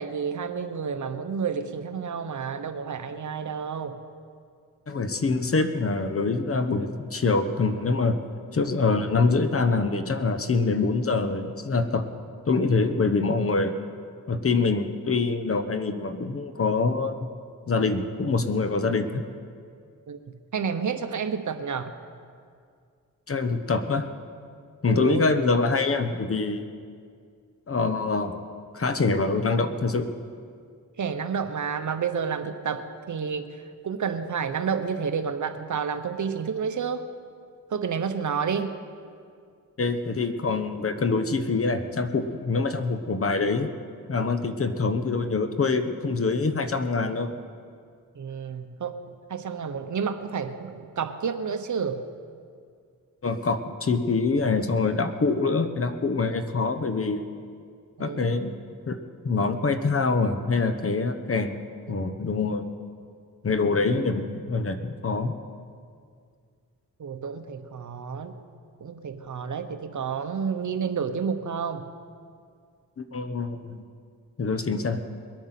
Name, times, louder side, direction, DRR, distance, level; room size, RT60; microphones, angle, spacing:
voice 1, 0.0-4.0 20.1-21.9 24.9-25.3 31.0-37.0 37.7-38.7 48.1-49.0 49.3-52.0 58.0-58.3 63.7-64.1 67.0-68.4 68.8-71.9, right 6 dB, 55° right, 9 dB, 1.0 m, -30 dB
voice 2, 4.9-8.2 8.5-12.0 12.5-13.7 14.3-17.2 17.7-19.2 23.3-24.1 24.8-26.7 27.7-28.4 28.7-30.1 39.8-43.7 44.1-47.3 53.2-57.2 58.0-58.5 58.9-59.0 59.2-61.6 61.9-62.6 63.4-65.3 73.0-73.8 74.4-75.0, left 4 dB, 40° left, 9 dB, 1.0 m, -25 dB
21.5 x 8.8 x 5.9 m, 2.2 s
cardioid pair, 85°, 35 cm